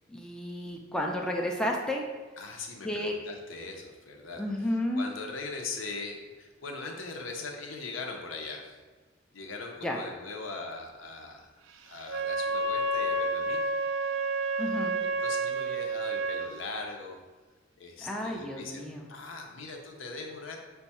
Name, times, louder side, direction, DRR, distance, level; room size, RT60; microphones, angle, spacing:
voice 1, 0.1-2.0 2.8-3.2 4.4-5.1 9.8-10.0 14.6-14.9 18.0-19.1, left 1 dB, 5° left, -1 dB, 0.4 m, -32 dB
voice 2, 2.4-4.4 4.9-8.7 9.3-11.5 11.9-13.7 15.0-17.2 17.8-20.6, left 3 dB, 70° left, 2 dB, 0.6 m, -40 dB
Wind instrument woodwind instrument, 12.0-16.5, right 2 dB, 80° right, 0.4 m, -30 dB
5.3 x 2.3 x 4.1 m, 1.3 s
head